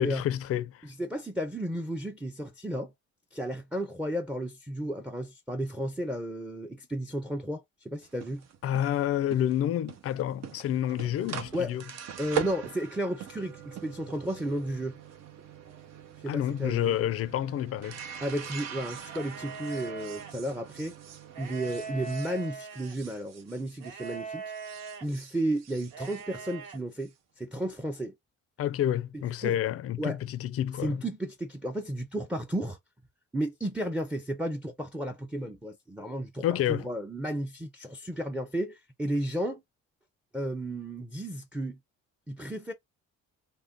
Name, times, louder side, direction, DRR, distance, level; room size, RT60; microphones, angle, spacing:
voice 1, 0.0-0.9 8.6-11.8 16.3-18.0 28.6-31.0 36.4-36.9, left 11 dB, 50° left, 0.4 m, -29 dB
voice 2, 0.8-2.9 3.3-8.5 11.5-11.7 12.2-15.0 16.2-17.0 18.2-20.9 21.4-24.4 25.0-28.1 29.1-29.6 30.0-30.2 30.8-32.8 33.3-39.6 40.3-41.8 42.3-42.7, right 1 dB, 5° right, 0.5 m, -33 dB
sound 1, 8.0-24.2 24.5-27.1, right 8 dB, 60° right, 0.7 m, -42 dB
sound 2, 19.0-20.3 21.3-23.0 23.8-25.1 25.9-26.8, right 5 dB, 90° right, 0.8 m, -41 dB
2.5 x 2.2 x 3.5 m
cardioid pair, 90°, 30 cm